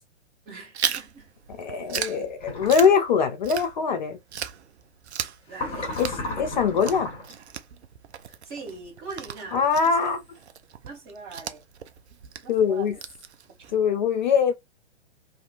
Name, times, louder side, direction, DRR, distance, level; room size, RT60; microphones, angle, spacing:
voice 1, 0.4-1.3 5.5-5.9 8.3-9.9 10.8-11.6 12.4-13.0, right 4 dB, 25° right, 1.3 m, -41 dB
Chewing mastication, 0.7-4.0 4.3-13.8, right 8 dB, 70° right, 0.5 m, -36 dB
voice 2, 1.6-4.2 6.0-6.1 6.4-7.1 9.5-10.2 12.5-13.0 13.7-14.5, left 6 dB, 40° left, 0.4 m, -22 dB
sound 1, 2.4-2.9 5.5-7.3, left 2 dB, 15° left, 1.3 m, -34 dB
2.7 x 2.5 x 2.4 m
figure-of-eight pair, 115°, 35 cm